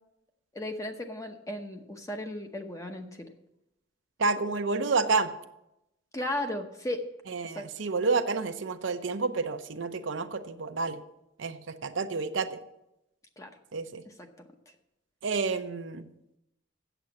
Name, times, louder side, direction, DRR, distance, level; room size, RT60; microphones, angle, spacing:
voice 1, 0.5-3.3 6.1-7.0 7.6-7.7 13.4-13.5 14.1-14.3, left 1 dB, 15° left, 5 dB, 0.9 m, -35 dB
voice 2, 4.2-5.3 7.3-11.0 11.4-12.6 13.7-14.0 15.2-16.1, right 4 dB, 70° right, 8 dB, 0.7 m, -29 dB
8.0 x 7.6 x 7.0 m, 0.86 s
head